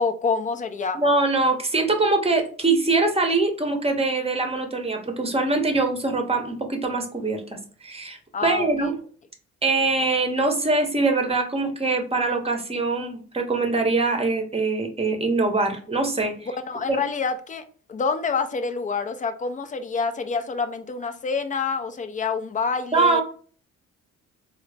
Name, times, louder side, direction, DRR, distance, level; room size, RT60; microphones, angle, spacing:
voice 1, 0.0-1.0 8.3-8.9 16.6-23.2, left 5 dB, 25° left, 0.4 m, -27 dB
voice 2, 0.9-8.9 9.6-16.5 16.9-17.0 22.9-23.2, right 3 dB, 20° right, 0.8 m, -23 dB
3.7 x 2.0 x 3.3 m
cardioid pair, 90°, 30 cm